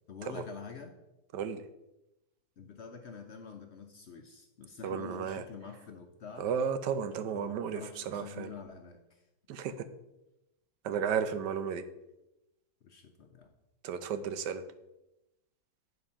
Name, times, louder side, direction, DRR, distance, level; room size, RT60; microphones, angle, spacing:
voice 1, 0.1-1.0 2.6-6.5 7.3-9.2 12.8-13.5, left 5 dB, 55° left, 5 dB, 0.8 m, -47 dB
voice 2, 4.8-5.4 6.4-8.5 9.5-9.8 10.8-11.8 13.8-14.6, right 7 dB, 90° right, 10 dB, 1.3 m, -33 dB
9.2 x 4.4 x 5.6 m, 0.95 s
omnidirectional pair, 1.8 m